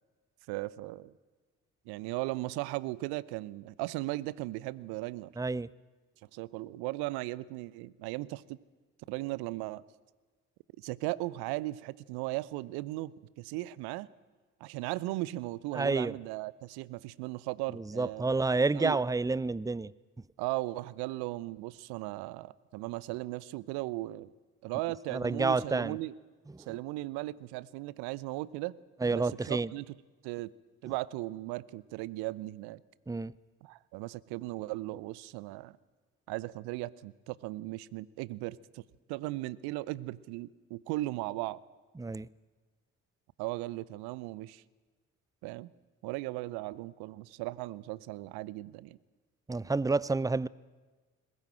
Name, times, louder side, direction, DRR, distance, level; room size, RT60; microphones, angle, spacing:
voice 1, 0.5-1.1 1.9-5.3 6.3-8.6 9.1-9.8 10.8-14.1 14.6-18.3 18.7-19.0 20.4-24.3 24.6-26.1 26.7-28.8 29.1-29.9 30.2-30.5 30.8-32.8 33.6-35.8 36.3-38.8 39.1-41.6 43.4-44.6 45.4-45.7 46.0-49.0, right 19 dB, 70° right, 0.8 m, -37 dB
voice 2, 5.4-5.7 15.7-16.1 17.7-19.9 25.1-26.0 26.5-26.8 29.0-29.7 33.1-33.3 42.0-42.3 49.5-50.5, right 3 dB, 10° right, 0.6 m, -29 dB
20.5 x 20.5 x 8.9 m
figure-of-eight pair, 45°, 41 cm